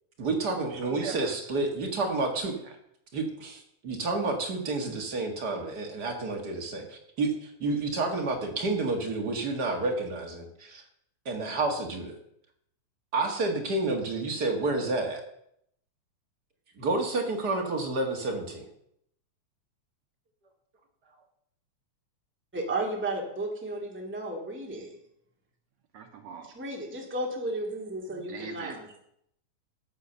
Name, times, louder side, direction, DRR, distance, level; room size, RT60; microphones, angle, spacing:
voice 1, 0.2-2.5 3.1-10.8 11.3-12.2 13.1-15.2 16.8-18.6, right 3 dB, 40° right, 2 dB, 1.9 m, -30 dB
voice 2, 0.7-1.4 2.3-2.7 25.9-26.5 28.3-28.8, right 8 dB, 70° right, 5 dB, 2.1 m, -42 dB
voice 3, 22.5-25.0 26.5-28.9, right 2 dB, 5° right, 0 dB, 1.8 m, -33 dB
12.0 x 8.4 x 6.7 m, 0.73 s
omnidirectional pair, 3.4 m